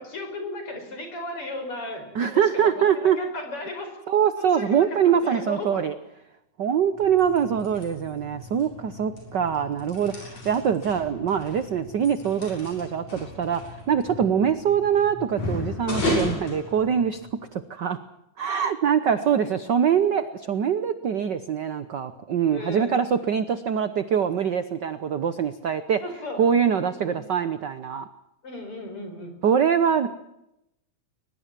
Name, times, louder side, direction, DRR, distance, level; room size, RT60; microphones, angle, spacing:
voice 1, 0.0-3.9 4.4-5.9 19.3-19.5 22.5-23.0 26.0-26.4 26.8-27.2 28.4-29.4, left 2 dB, 45° left, 5 dB, 6.0 m, -36 dB
voice 2, 2.1-3.2 4.1-5.9 6.6-17.2 17.5-18.0 18.4-26.0 26.4-28.1 29.4-30.1, right 8 dB, 75° right, 12 dB, 1.0 m, -23 dB
sound 1, 6.9-17.4, left 1 dB, 65° left, 8.3 m, -35 dB
22.0 x 21.5 x 7.5 m, 0.83 s
omnidirectional pair, 3.4 m